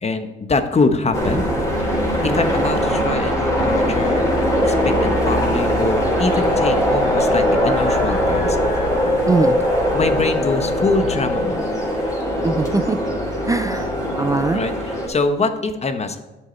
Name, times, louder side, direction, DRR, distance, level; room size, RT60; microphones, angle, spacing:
voice 1, 0.0-1.4 2.2-4.2 4.6-8.6 9.9-11.6 14.5-16.2, left 3 dB, 30° left, 8 dB, 1.1 m, -23 dB
sound 1, 1.1-15.1, equal, 15° left, 3.5 m, -20 dB
voice 2, 2.2-2.5 9.3-9.6 12.4-13.0 13.4-13.9 14.2-14.6, right 3 dB, 15° right, 10 dB, 0.4 m, -21 dB
10.5 x 6.7 x 4.4 m, 1.1 s
cardioid pair, 90°, 20 cm